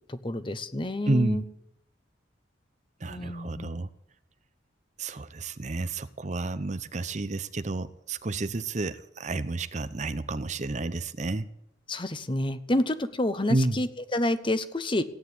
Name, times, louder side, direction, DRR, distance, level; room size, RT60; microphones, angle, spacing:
voice 1, 0.1-1.4 3.1-3.8 11.9-15.0, left 1 dB, 25° left, 12 dB, 0.9 m, -29 dB
voice 2, 1.1-1.4 3.0-3.9 5.0-11.5 13.5-13.8, right 2 dB, 40° right, 13 dB, 0.7 m, -30 dB
16.5 x 9.0 x 9.7 m, 0.81 s
head